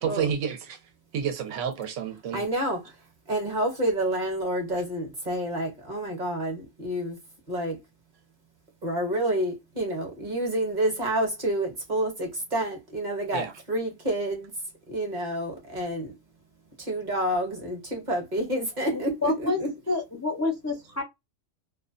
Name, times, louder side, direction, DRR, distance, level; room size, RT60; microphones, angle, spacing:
voice 1, 0.0-0.6 1.1-2.4 13.3-13.5, right 8 dB, 75° right, 0.9 m, -29 dB
voice 2, 2.3-3.0 3.3-7.2 7.5-7.8 8.8-14.5 14.9-16.1 16.8-19.7, right 1 dB, 40° right, 0.8 m, -28 dB
voice 3, 18.9-21.0, left 3 dB, 25° left, 0.3 m, -29 dB
2.4 x 2.1 x 2.4 m
omnidirectional pair, 1.3 m